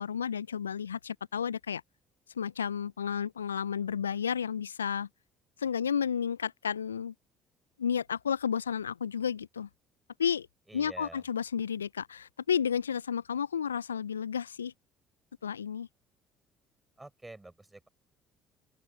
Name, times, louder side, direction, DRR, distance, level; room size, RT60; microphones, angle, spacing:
voice 1, 0.0-1.8 2.4-5.1 5.6-7.1 7.8-9.7 10.2-10.5 10.7-14.7 15.4-15.9, left 7 dB, 85° left, 0.5 m, -32 dB
voice 2, 10.7-11.2 17.0-17.9, right 2 dB, 15° right, 5.7 m, -48 dB
open air
figure-of-eight pair, 55°, 0 cm